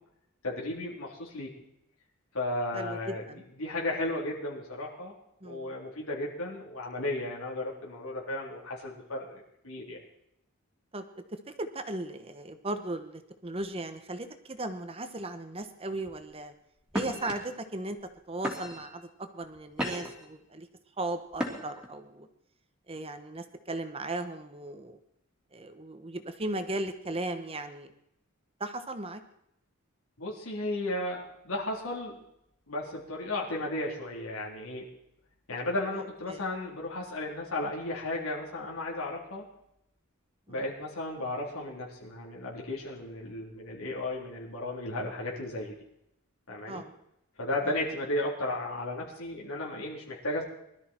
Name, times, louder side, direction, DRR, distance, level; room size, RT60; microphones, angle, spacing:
voice 1, 0.4-1.5 2.3-3.2 3.6-5.1 5.4-10.0 30.2-32.2 32.7-34.8 35.5-39.4 40.5-45.8 46.5-46.8 47.4-50.4, left 1 dB, 90° left, -3 dB, 3.7 m, -34 dB
voice 2, 2.7-3.4 5.4-5.7 10.9-11.0 11.6-16.5 16.9-18.0 18.3-20.7 21.0-22.3 22.9-25.0 25.5-27.9 28.6-29.2 36.3-36.4 40.5-40.6 46.7-46.9, right 2 dB, 25° right, 8 dB, 1.1 m, -37 dB
sound 1, 16.0-16.3 16.9-17.3 18.0-18.1 18.4-18.9 19.4-20.3 21.3-21.9, equal, 5° right, 2.8 m, -34 dB
21.0 x 13.0 x 4.5 m, 0.80 s
head